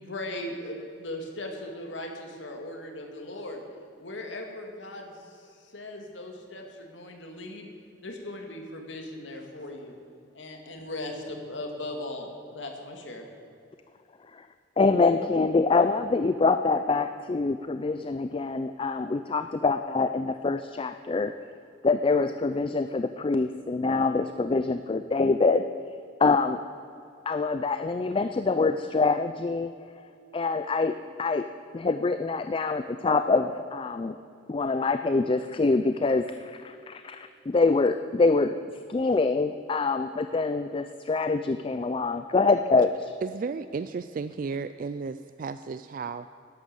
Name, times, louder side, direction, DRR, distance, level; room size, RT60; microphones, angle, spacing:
voice 1, 0.0-3.6 4.0-7.7 8.0-9.9 10.3-13.3, left 1 dB, 80° left, 2 dB, 2.2 m, -38 dB
voice 2, 14.8-21.3 21.8-25.6 26.2-26.6 27.3-29.7 30.3-31.5 31.7-34.2 34.5-38.5 38.9-43.1, left 3 dB, 30° left, 10 dB, 0.4 m, -25 dB
voice 3, 43.2-46.3, right 4 dB, 45° right, 12 dB, 0.3 m, -34 dB
12.0 x 11.5 x 7.0 m, 2.6 s
head